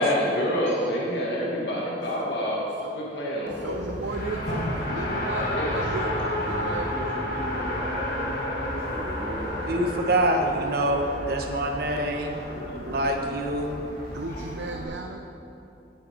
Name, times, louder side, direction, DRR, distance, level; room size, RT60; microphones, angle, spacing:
voice 1, 0.0-2.7 2.9-3.8 5.3-5.7 12.4-13.1, equal, 80° left, -4 dB, 1.7 m, -28 dB
Race car auto racing, 3.5-14.8, left 1 dB, 60° left, 2.2 m, -31 dB
voice 2, 3.6-6.9 14.1-15.2, right 3 dB, 90° right, 3 dB, 0.7 m, -35 dB
voice 3, 6.2-10.5 10.8-11.0, equal, 15° right, -5 dB, 1.9 m, -38 dB
voice 4, 9.6-12.4 12.8-13.8, right 1 dB, 60° right, 2 dB, 1.1 m, -25 dB
16.5 x 8.1 x 4.4 m, 2.8 s
head